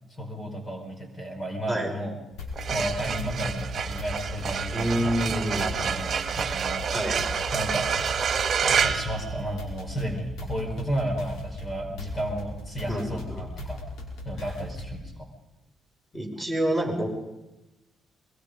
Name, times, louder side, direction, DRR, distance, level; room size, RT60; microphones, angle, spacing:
voice 1, 0.1-2.2 2.7-6.9 7.5-7.9 8.6-13.8 14.2-15.3, right 1 dB, 25° left, 3 dB, 4.8 m, -33 dB
sound 1, 2.4-15.1, left 2 dB, 85° left, 5.1 m, -38 dB
sound 2, 2.4-9.9, right 7 dB, 50° right, 1.4 m, -28 dB
voice 2, 4.7-5.8 6.9-7.2 12.9-13.4 16.1-17.1, right 1 dB, 5° left, 1 dB, 6.0 m, -27 dB
23.5 x 22.0 x 5.3 m, 0.99 s
cardioid pair, 90°, 0 cm